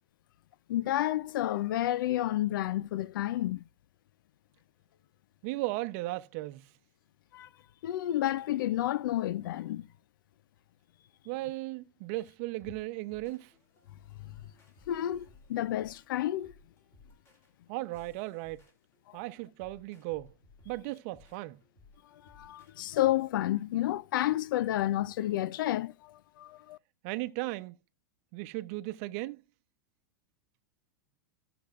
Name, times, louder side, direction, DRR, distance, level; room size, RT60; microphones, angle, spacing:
voice 1, 0.7-3.6 7.3-7.5 7.8-9.9 14.9-16.5 22.3-26.8, left 14 dB, 75° left, 0.5 m, -30 dB
voice 2, 5.4-6.7 11.2-13.5 17.7-18.6 19.1-20.3 20.6-21.6 27.0-27.8 28.3-29.4, right 19 dB, 45° right, 0.8 m, -36 dB
sound 1, 12.6-22.9, left 3 dB, 20° left, 3.1 m, -61 dB
14.0 x 6.9 x 2.5 m
supercardioid pair, 155°, 11 cm